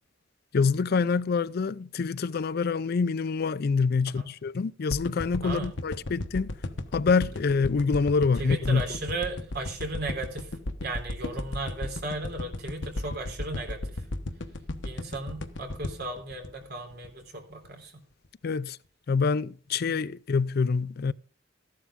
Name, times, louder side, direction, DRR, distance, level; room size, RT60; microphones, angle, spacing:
voice 1, 0.5-6.5 6.9-8.8 18.4-18.8 19.1-21.1, left 4 dB, 55° left, 0.4 m, -26 dB
sound 1, 4.9-17.2 17.6-17.7, left 1 dB, 70° left, 1.1 m, -35 dB
voice 2, 5.4-5.7 8.4-10.5 10.8-14.0 14.8-17.9 19.9-20.0, right 2 dB, 60° right, 3.4 m, -35 dB
14.0 x 11.5 x 3.6 m
head